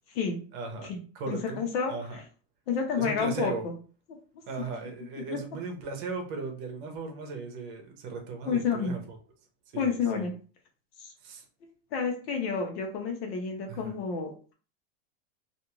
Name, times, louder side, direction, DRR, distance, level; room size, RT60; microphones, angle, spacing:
voice 1, 0.5-1.6 1.9-2.2 3.0-3.6 4.5-9.2 9.7-10.3 11.2-11.4 13.7-13.9, right 4 dB, 45° right, 4 dB, 0.8 m, -37 dB
voice 2, 1.3-1.9 2.7-3.7 5.3-5.4 8.5-9.0 9.7-10.3 11.0-11.1 11.9-14.3, left 5 dB, 60° left, 3 dB, 0.9 m, -29 dB
2.6 x 2.4 x 3.0 m, 0.38 s
supercardioid pair, 160°, 34 cm